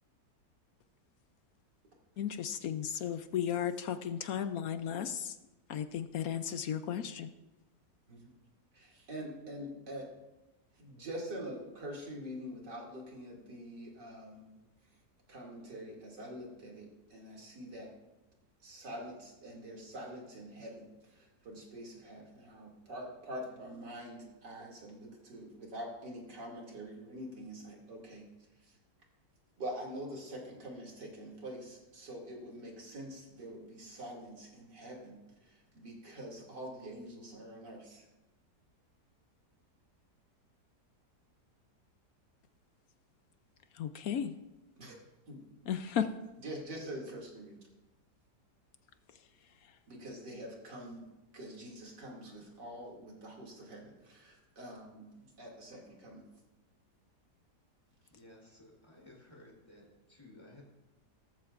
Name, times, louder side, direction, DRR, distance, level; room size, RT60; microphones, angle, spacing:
voice 1, 2.2-5.4 5.7-7.3 43.7-44.4 45.7-46.1 49.1-49.8, left 9 dB, 65° left, 10 dB, 1.0 m, -35 dB
voice 2, 8.7-10.0 10.8-14.6 15.3-17.9 18.6-28.3 28.6-28.7 29.6-38.0 44.8-45.0 45.3-45.4 46.4-47.7 49.9-51.1 51.3-56.2, equal, 85° right, -1 dB, 3.2 m, -45 dB
voice 3, 58.1-60.6, left 1 dB, 15° left, -3 dB, 3.8 m, -56 dB
17.5 x 14.0 x 2.5 m, 1.0 s
omnidirectional pair, 1.8 m